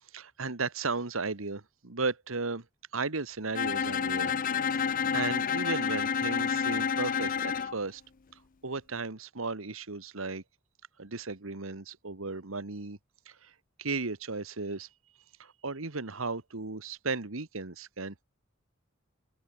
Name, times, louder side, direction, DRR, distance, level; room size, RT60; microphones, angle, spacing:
voice 1, 0.1-2.6 2.9-4.3 4.7-8.0 8.6-10.4 11.0-13.0 13.3-13.5 13.8-14.9 15.4-18.2, right 3 dB, 90° right, 1.6 m, -35 dB
Bowed string instrument, 3.6-7.8, left 6 dB, 45° left, 0.6 m, -29 dB
open air
head